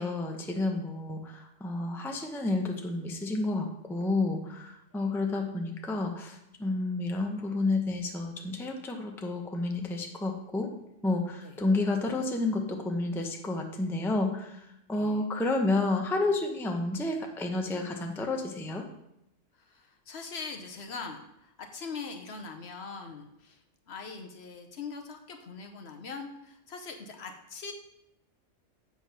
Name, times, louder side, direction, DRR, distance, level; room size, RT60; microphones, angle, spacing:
voice 1, 0.0-10.7 11.0-18.9, left 2 dB, 5° left, 3 dB, 0.5 m, -30 dB
voice 2, 14.9-15.2 19.5-27.7, left 4 dB, 60° left, 4 dB, 1.1 m, -42 dB
7.5 x 4.7 x 5.6 m, 0.83 s
omnidirectional pair, 1.3 m